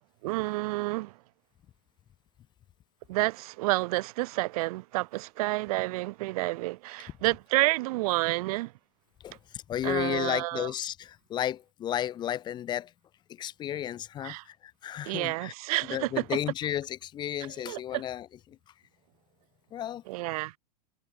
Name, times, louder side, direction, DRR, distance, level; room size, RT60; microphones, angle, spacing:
voice 1, 0.2-1.2 3.1-8.7 9.8-10.7 14.2-14.4 15.1-16.4 17.7-18.0 20.1-20.6, right 21 dB, 60° right, 0.5 m, -29 dB
voice 2, 9.2-12.9 13.3-15.5 15.9-18.6 19.7-20.0, left 11 dB, 20° left, 0.5 m, -33 dB
supercardioid pair, 140°, 21 cm